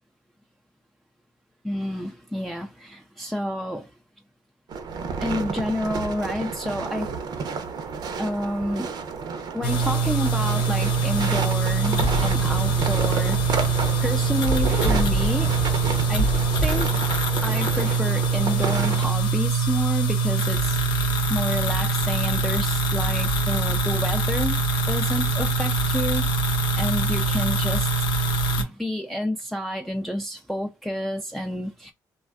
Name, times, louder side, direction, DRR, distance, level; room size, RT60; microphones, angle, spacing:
voice 1, 1.6-3.9 5.2-7.1 8.2-9.0 9.5-13.7 14.0-15.5 16.1-16.3 16.6-16.9 17.4-24.6 24.9-27.9 28.5-31.9, equal, ahead, 0.3 m, -29 dB
sound 1, 4.7-19.1, right 5 dB, 60° right, 0.6 m, -31 dB
sound 2, 9.6-28.6, right 3 dB, 90° left, 0.6 m, -23 dB
2.4 x 2.2 x 2.3 m
cardioid pair, 85°, 8 cm